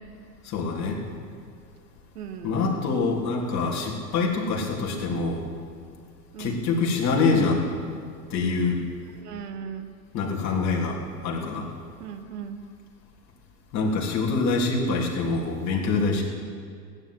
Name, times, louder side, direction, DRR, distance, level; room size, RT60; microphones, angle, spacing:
voice 1, 0.4-1.0 2.4-5.4 6.4-7.7 8.3-8.8 10.1-11.7 13.7-16.2, left 4 dB, 35° left, -3 dB, 3.4 m, -25 dB
voice 2, 2.1-2.6 6.3-6.6 9.2-9.9 12.0-12.6 14.9-15.0, right 8 dB, 70° right, 8 dB, 1.4 m, -37 dB
16.5 x 10.5 x 7.9 m, 2.2 s
hypercardioid pair, 110°, 49 cm